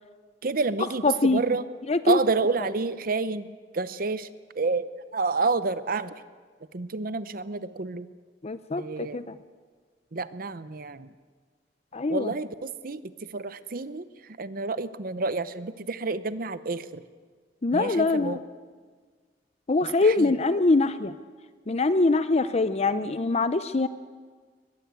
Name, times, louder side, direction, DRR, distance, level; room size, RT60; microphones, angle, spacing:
voice 1, 0.4-1.6 2.1-3.5 3.7-4.3 4.5-6.1 6.7-8.1 8.8-9.2 10.1-11.1 12.1-17.0 17.7-18.4 20.0-20.3, right 3 dB, 55° right, 14 dB, 0.8 m, -29 dB
voice 2, 1.0-1.4 1.9-2.2 8.4-9.3 11.9-12.3 17.6-18.4 19.7-21.1 21.7-23.9, left 3 dB, 35° left, 13 dB, 0.6 m, -23 dB
22.0 x 21.0 x 8.3 m, 1.5 s
head